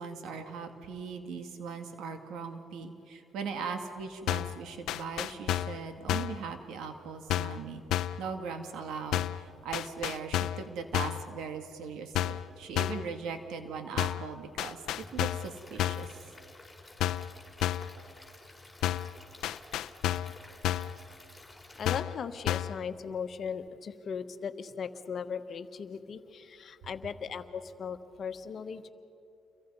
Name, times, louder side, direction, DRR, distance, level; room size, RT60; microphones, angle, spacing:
voice 1, 0.0-7.8 8.2-14.8 15.1-16.1, right 5 dB, 85° right, 6 dB, 2.0 m, -39 dB
sound 1, 4.3-4.6 4.9-5.8 6.1-6.4 7.3-7.6 7.9-8.2 9.1-9.4 9.7-10.7 10.9-11.3 12.2-12.5 12.8-13.1 14.0-14.3 14.6-15.5 15.8-16.1 17.0-17.3 17.6-17.9 18.8-19.2 19.4-20.4 20.6-21.0 21.9-22.2 22.5-22.8, left 13 dB, 85° left, 0.6 m, -31 dB
Stream / Liquid, 14.9-21.9, left 2 dB, 10° left, 5.6 m, -53 dB
voice 2, 21.8-28.9, left 6 dB, 55° left, 9 dB, 1.2 m, -38 dB
29.0 x 23.0 x 5.5 m, 2.7 s
cardioid pair, 90°, 0 cm